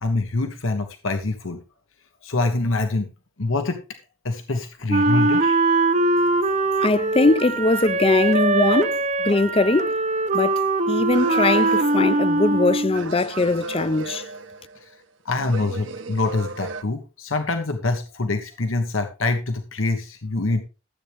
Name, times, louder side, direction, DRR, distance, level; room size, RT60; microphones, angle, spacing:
voice 1, 0.0-1.6 2.2-3.1 3.4-3.8 4.2-5.6 14.8-14.9 15.2-20.6, left 3 dB, 85° left, 1.3 m, -25 dB
Wind instrument woodwind instrument, 4.9-13.1, right 2 dB, 35° right, 0.7 m, -21 dB
voice 2, 6.8-10.0 10.3-10.5 10.9-14.2, left 2 dB, 30° left, 0.5 m, -21 dB
sound 1, 11.1-12.6 12.9-15.0 15.3-16.8, right 3 dB, 70° right, 1.0 m, -35 dB
13.5 x 8.3 x 3.5 m
head